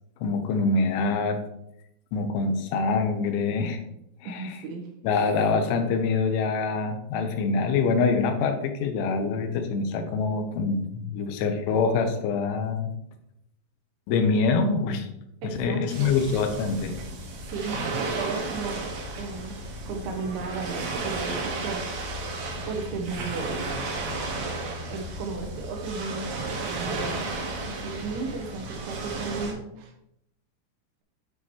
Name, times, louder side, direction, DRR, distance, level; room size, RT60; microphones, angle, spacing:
voice 1, 0.2-1.4 2.1-3.8 4.2-4.6 5.0-12.9 14.1-15.1 15.4-17.0, left 4 dB, 85° left, 6 dB, 3.2 m, -25 dB
voice 2, 4.3-4.9 15.4-16.2 17.3-17.9 18.1-19.6 19.9-23.5 24.9-27.4 27.7-29.9, right 4 dB, 80° right, 3 dB, 3.1 m, -35 dB
sound 1, 15.9-29.5, right 2 dB, 60° right, 2.7 m, -33 dB
9.5 x 6.4 x 3.0 m, 0.80 s
omnidirectional pair, 5.6 m